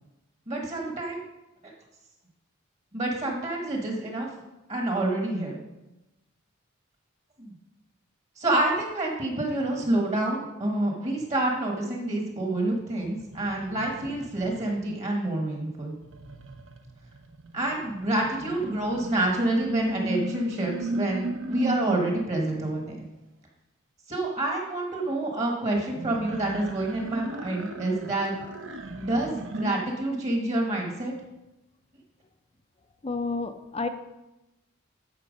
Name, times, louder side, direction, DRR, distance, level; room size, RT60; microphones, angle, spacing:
voice 1, 0.5-1.2 2.9-4.3 4.7-5.6 7.4-7.5 8.4-15.9 17.5-23.0 24.1-28.3 28.9-31.1, right 2 dB, 30° right, 0 dB, 1.4 m, -28 dB
sound 1, 13.0-15.0 16.0-22.8 25.9-29.7, right 1 dB, 65° right, 0.9 m, -36 dB
voice 2, 33.0-33.9, left 3 dB, 30° left, 8 dB, 0.6 m, -30 dB
12.5 x 4.4 x 5.2 m, 0.97 s
head